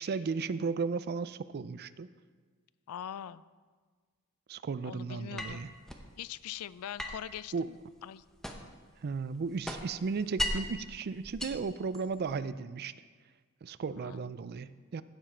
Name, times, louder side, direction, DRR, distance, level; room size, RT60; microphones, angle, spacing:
voice 1, 0.0-2.1 4.5-5.7 7.5-7.7 9.0-12.9 13.6-15.0, right 5 dB, 45° right, 15 dB, 0.4 m, -35 dB
voice 2, 2.9-3.4 4.8-5.7 6.2-8.2 10.5-10.6 14.0-14.3, left 10 dB, 75° left, 18 dB, 0.3 m, -43 dB
sound 1, 5.4-6.1 7.0-8.8 9.2-10.8 11.2-12.3, equal, ahead, 0.8 m, -38 dB
16.0 x 7.2 x 4.4 m, 1.5 s
head